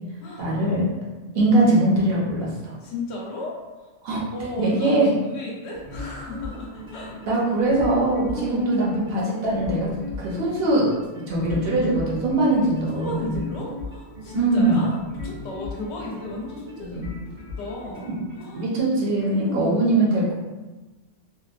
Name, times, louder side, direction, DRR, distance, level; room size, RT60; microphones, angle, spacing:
voice 1, 0.4-0.8 1.3-2.7 4.0-4.2 4.6-5.1 7.3-9.9 10.2-10.9 11.3-13.3 14.3-14.9 16.8-17.1 18.5-20.3, right 2 dB, 60° right, -5 dB, 0.8 m, -21 dB
voice 2, 2.8-3.9 4.3-7.2 8.3-8.7 12.9-17.1 17.6-18.7 19.3-20.0, left 2 dB, 70° left, -2 dB, 0.8 m, -34 dB
sound 1, 5.7-18.6, left 2 dB, 80° right, 1.3 m, -38 dB
2.8 x 2.1 x 2.4 m, 1.2 s
omnidirectional pair, 1.2 m